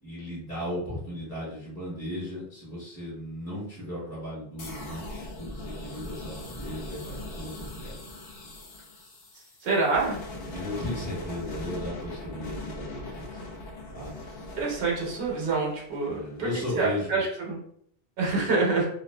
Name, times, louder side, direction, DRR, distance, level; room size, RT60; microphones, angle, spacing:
voice 1, 0.0-8.0 10.5-13.4 13.9-14.1 16.1-17.1, left 1 dB, 5° left, -12 dB, 1.0 m, -36 dB
sound 1, 4.6-16.4, left 2 dB, 65° left, 0.8 m, -40 dB
voice 2, 9.6-10.2 14.6-16.5 16.7-17.6 18.2-18.9, right 3 dB, 65° right, -3 dB, 1.0 m, -26 dB
2.5 x 2.4 x 2.2 m, 0.67 s
omnidirectional pair, 1.1 m